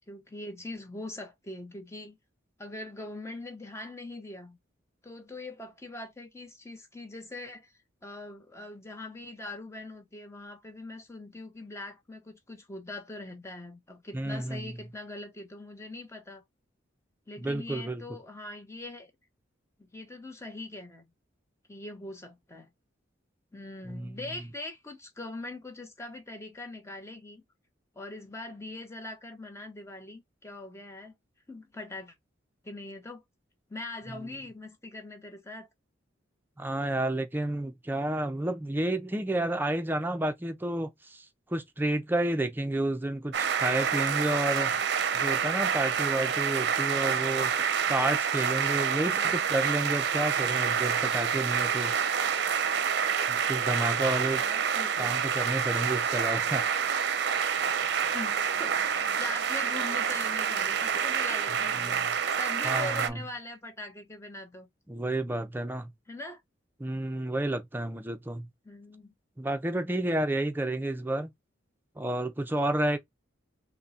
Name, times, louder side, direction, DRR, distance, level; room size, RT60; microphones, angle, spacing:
voice 1, 0.0-2.2 2.6-4.6 5.0-16.4 17.3-19.1 19.8-21.1 21.7-22.7 23.5-27.4 27.9-31.1 31.5-32.1 32.6-33.2 33.7-35.7 49.1-49.5 54.3-55.1 58.1-64.7 66.1-66.4 68.6-69.1, left 2 dB, 15° left, 0.8 m, -42 dB
voice 2, 14.1-14.8 17.4-18.0 23.9-24.1 36.6-44.7 45.1-47.5 47.9-51.9 53.3-54.4 55.0-57.0 61.7-62.0 62.6-63.2 64.9-65.9 66.8-68.5 69.4-71.3 72.0-73.0, right 1 dB, 10° right, 0.5 m, -31 dB
sound 1, 43.3-63.1, right 7 dB, 60° right, 0.6 m, -28 dB
3.7 x 2.1 x 4.1 m
head